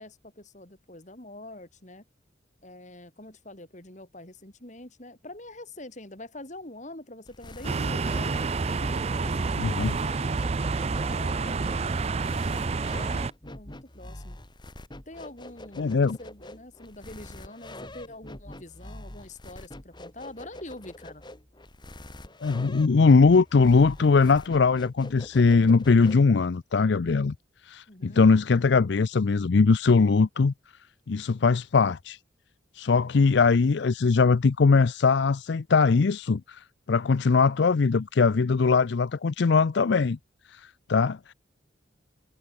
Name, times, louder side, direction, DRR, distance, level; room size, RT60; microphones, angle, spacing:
voice 1, 0.0-2.0 2.6-8.2 8.8-10.4 10.8-14.4 15.1-21.2 27.9-28.3, left 1 dB, 40° left, 3.6 m, -45 dB
sound 1, 7.3-26.5, left 1 dB, 25° left, 2.1 m, -45 dB
sound 2, 7.6-13.3, right 4 dB, 30° right, 0.4 m, -28 dB
voice 2, 9.6-9.9 15.8-16.2 22.4-27.3 27.6-30.5 31.1-32.2 32.7-40.2 40.5-41.3, left 4 dB, 60° left, 0.5 m, -21 dB
head